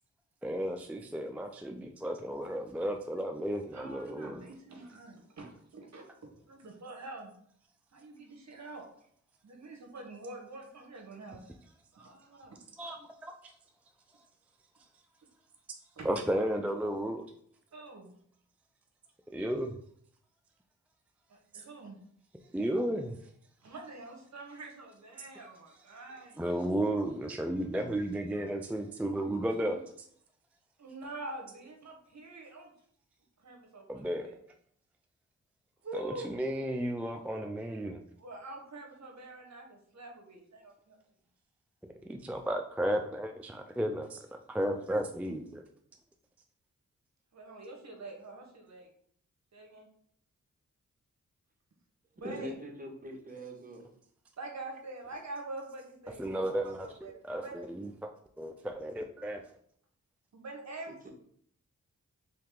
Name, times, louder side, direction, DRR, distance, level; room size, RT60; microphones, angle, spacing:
voice 1, 0.4-4.5 12.8-13.5 16.0-17.2 19.3-19.8 22.5-23.2 26.4-29.8 33.9-34.3 35.9-38.0 42.1-45.6 56.2-58.1 58.4-59.4, right 1 dB, 5° right, 4 dB, 0.3 m, -33 dB
voice 2, 3.7-7.3 7.9-8.8 9.4-11.4 11.9-12.6 16.0-16.1 17.7-18.1 21.3-22.0 23.6-26.4 29.7-29.8 30.8-32.7 33.4-34.4 35.8-36.3 38.2-41.0 47.3-48.9 49.5-49.9 52.2-52.5 54.4-57.6 60.3-61.1, right 2 dB, 55° right, 2 dB, 1.0 m, -45 dB
voice 3, 52.2-53.9 60.9-61.1, equal, 25° right, 0 dB, 1.1 m, -42 dB
3.2 x 2.8 x 3.7 m, 0.64 s
cardioid pair, 45°, 32 cm